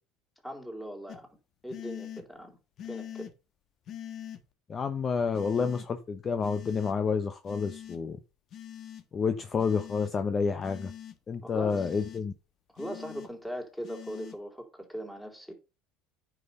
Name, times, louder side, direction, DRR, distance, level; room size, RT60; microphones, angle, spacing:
voice 1, 0.4-1.3 1.6-2.6 2.8-3.3 11.4-12.0 12.7-15.5, equal, 5° left, 3.9 m, -40 dB
sound 1, 1.1-1.2 1.7-2.2 2.8-3.3 3.9-4.4 5.3-5.9 6.4-6.9 7.5-8.0 8.5-9.0 9.6-10.1 10.6-11.1 11.7-12.2 12.8-13.3 13.8-14.4, left 10 dB, 50° left, 1.5 m, -43 dB
voice 2, 4.7-8.2 9.1-10.9 11.3-12.3, left 5 dB, 35° left, 1.0 m, -29 dB
9.3 x 5.9 x 5.6 m
supercardioid pair, 90°, 0 cm